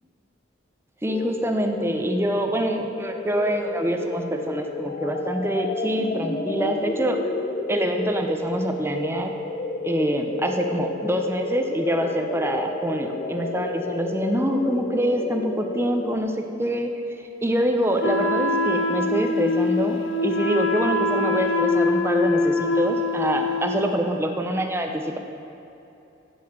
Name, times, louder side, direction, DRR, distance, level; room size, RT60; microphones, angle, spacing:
voice 1, 1.0-7.2 7.7-9.3 9.8-16.9 17.4-25.2, right 1 dB, 10° right, 4 dB, 0.6 m, -25 dB
sound 1, 1.1-16.2, left 2 dB, 40° left, 0.4 m, -31 dB
Wind instrument woodwind instrument, 18.0-23.9, left 3 dB, 75° left, 0.7 m, -23 dB
8.5 x 7.1 x 7.5 m, 2.9 s
head